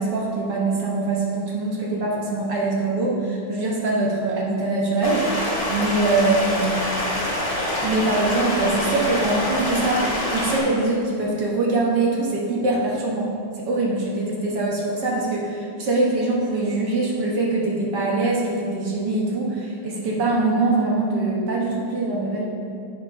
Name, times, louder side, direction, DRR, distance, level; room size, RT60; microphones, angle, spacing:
voice 1, 0.0-5.3 5.7-6.9 7.8-13.3 13.7-22.5, right 2 dB, 60° right, -3 dB, 1.1 m, -23 dB
Stream, 5.0-10.6, left 1 dB, 35° left, 0.5 m, -25 dB
11.0 x 4.1 x 4.9 m, 2.3 s
omnidirectional pair, 3.4 m